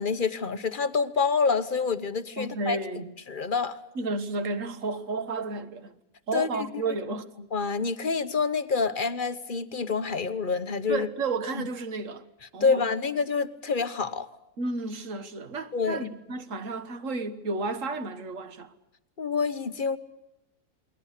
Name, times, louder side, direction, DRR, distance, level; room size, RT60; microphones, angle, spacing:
voice 1, 0.0-2.8 3.3-3.8 6.3-6.5 7.5-11.1 12.6-14.3 15.7-16.1 19.2-20.0, left 5 dB, 35° left, 1.1 m, -27 dB
voice 2, 2.4-3.1 4.0-5.9 6.3-7.3 10.9-12.2 12.5-12.9 14.6-18.7, right 3 dB, 55° right, 1.7 m, -32 dB
29.0 x 21.0 x 6.6 m
omnidirectional pair, 1.7 m